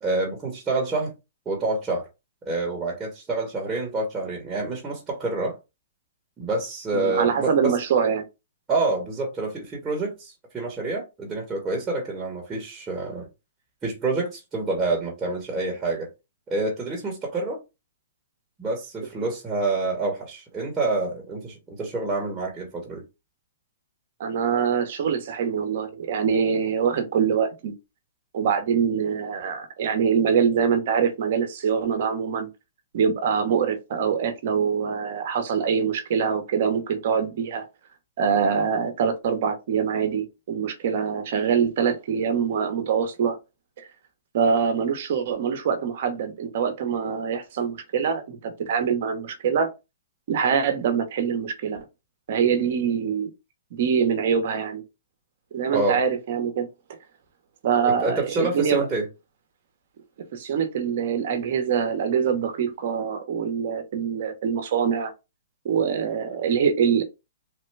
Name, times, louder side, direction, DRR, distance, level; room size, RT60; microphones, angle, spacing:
voice 1, 0.0-1.1 1.4-2.1 2.4-5.6 6.4-7.8 8.7-13.3 13.8-16.1 16.5-17.6 18.6-23.0 55.7-56.0 57.8-59.1, right 2 dB, 15° right, 1.1 m, -27 dB
voice 2, 6.9-8.2 24.2-27.7 28.3-32.5 32.9-37.7 38.2-43.4 44.3-49.7 50.3-51.8 52.3-53.3 53.7-54.8 55.5-56.7 57.6-58.9 60.3-65.1 65.6-67.0, right 7 dB, 60° right, 0.8 m, -24 dB
3.3 x 2.1 x 3.2 m
hypercardioid pair, 140°, 0 cm